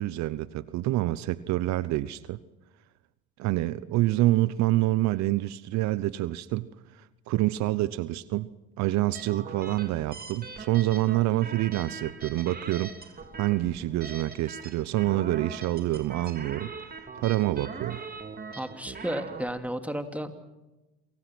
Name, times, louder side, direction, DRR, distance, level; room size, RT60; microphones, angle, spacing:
voice 1, 0.0-2.4 3.4-6.7 7.0-8.5 8.8-12.9 13.3-16.7 17.2-18.0, right 16 dB, 70° right, 17 dB, 0.9 m, -27 dB
sound 1, 9.1-19.5, right 4 dB, 30° right, 3.2 m, -42 dB
voice 2, 18.6-20.3, right 1 dB, 5° right, 6 dB, 3.0 m, -33 dB
28.0 x 24.0 x 6.2 m, 1.0 s
supercardioid pair, 75°, 29 cm